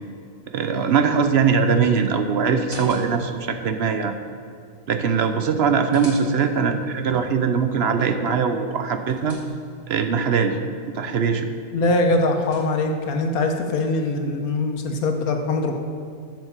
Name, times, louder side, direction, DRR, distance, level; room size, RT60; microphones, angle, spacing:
voice 1, 0.5-4.1 4.9-9.4 9.9-10.6 10.9-11.5, right 6 dB, 55° right, 7 dB, 0.9 m, -21 dB
sound 1, 2.5-3.4 5.4-6.7 8.7-9.9 11.9-13.0, equal, 25° left, 3.3 m, -44 dB
voice 2, 11.7-15.7, left 2 dB, 85° left, 4 dB, 1.5 m, -22 dB
8.0 x 7.5 x 7.3 m, 2.3 s
omnidirectional pair, 1.5 m